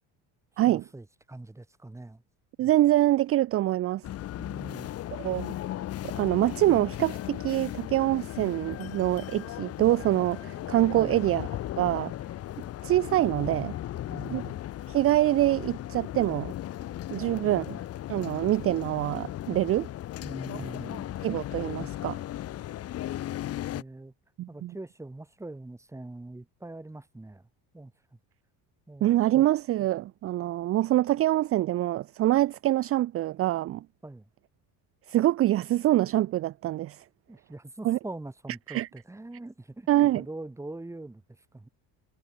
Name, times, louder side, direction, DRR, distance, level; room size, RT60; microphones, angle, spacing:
voice 1, 0.7-2.2 4.4-4.9 10.9-11.2 14.1-14.6 17.2-17.8 20.2-21.1 23.7-24.1 24.5-27.5 27.7-27.9 28.9-29.1 34.0-34.3 37.3-39.9 40.1-41.7, right 2 dB, 5° right, 2.5 m, -43 dB
voice 2, 2.6-4.1 5.1-5.5 6.2-11.5 11.8-12.1 12.8-13.8 14.3-14.4 14.9-16.5 17.1-17.8 18.1-19.9 21.2-22.2 24.4-24.7 29.0-33.8 35.1-37.0 37.8-38.0 38.7-38.9 39.9-40.2, right 14 dB, 35° right, 0.4 m, -25 dB
sound 1, 4.0-23.8, left 13 dB, 35° left, 0.7 m, -36 dB
cardioid pair, 160°, 43 cm